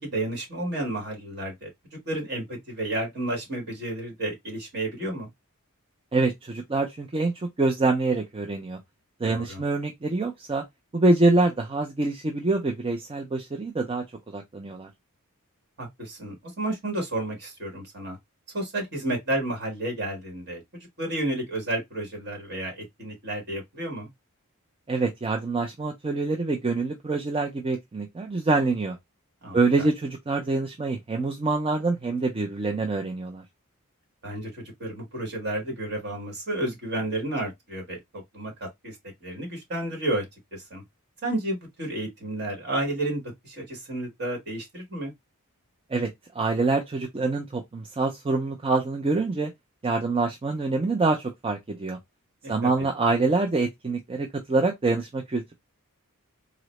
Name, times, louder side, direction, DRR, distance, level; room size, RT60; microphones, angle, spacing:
voice 1, 0.0-1.7 2.0-5.3 9.2-9.6 15.8-18.2 18.5-24.1 29.4-29.6 34.2-39.0 39.2-40.2 40.5-40.8 41.2-45.1 52.4-52.7, right 1 dB, 50° right, 1.5 m, -31 dB
voice 2, 6.1-8.8 9.2-10.6 10.9-14.9 24.9-29.0 29.5-33.4 45.9-46.1 46.3-49.5 49.8-52.0 52.5-55.5, right 3 dB, 25° right, 0.4 m, -25 dB
3.8 x 2.0 x 3.0 m
head